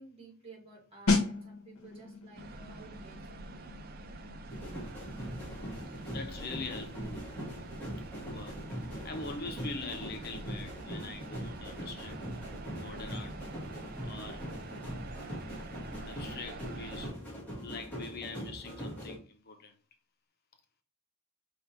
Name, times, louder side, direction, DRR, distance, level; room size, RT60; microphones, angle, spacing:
voice 1, 0.0-3.8, right 3 dB, 25° right, 2.2 m, -54 dB
sound 1, 1.1-11.6 11.8-12.1, left 3 dB, 85° left, 1.2 m, -38 dB
sound 2, 2.3-17.1, right 2 dB, 45° right, 0.5 m, -46 dB
sound 3, 4.5-19.2, equal, 5° left, 1.6 m, -42 dB
voice 2, 6.1-7.2 8.2-8.6 9.0-12.2 12.7-13.4 14.0-14.5 16.1-17.2 17.6-19.8, left 3 dB, 45° left, 0.6 m, -43 dB
5.2 x 2.9 x 3.2 m
head